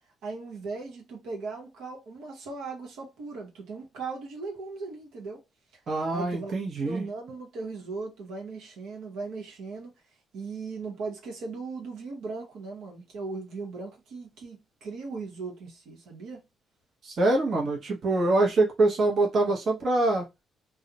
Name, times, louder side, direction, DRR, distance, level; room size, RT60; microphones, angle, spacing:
voice 1, 0.2-5.4 6.1-6.5 6.8-9.9 10.3-16.4, right 4 dB, 85° right, 0.9 m, -38 dB
voice 2, 5.9-7.1 17.0-20.2, right 2 dB, 55° right, 0.8 m, -24 dB
2.3 x 2.0 x 2.7 m
cardioid pair, 90°, 0 cm